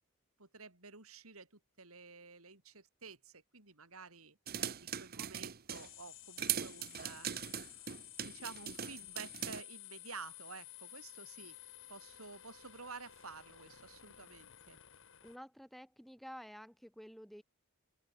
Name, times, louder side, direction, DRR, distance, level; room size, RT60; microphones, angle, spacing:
voice 1, 0.4-1.5 1.8-4.4 5.0-7.3 8.3-11.6 11.9-14.8, right 4 dB, 80° right, 5.2 m, -51 dB
sound 1, 4.5-5.9 6.4-9.6, right 9 dB, 45° right, 1.0 m, -40 dB
sound 2, 5.7-15.4, left 13 dB, 65° left, 3.3 m, -54 dB
voice 2, 15.2-17.4, equal, ahead, 3.1 m, -51 dB
open air
head